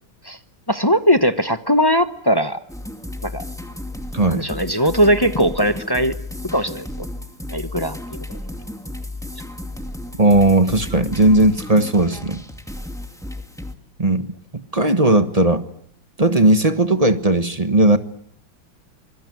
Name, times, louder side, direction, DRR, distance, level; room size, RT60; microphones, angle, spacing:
voice 1, 0.7-2.6 3.2-3.4 4.3-6.1 6.5-7.1 7.5-8.4, equal, 20° left, 9 dB, 0.7 m, -19 dB
sound 1, 2.7-13.7, left 1 dB, ahead, 2.2 m, -33 dB
voice 2, 4.1-4.5 10.2-12.4 14.0-15.6 16.2-18.0, right 2 dB, 20° right, 9 dB, 1.2 m, -17 dB
25.5 x 23.0 x 9.5 m, 0.68 s
omnidirectional pair, 2.1 m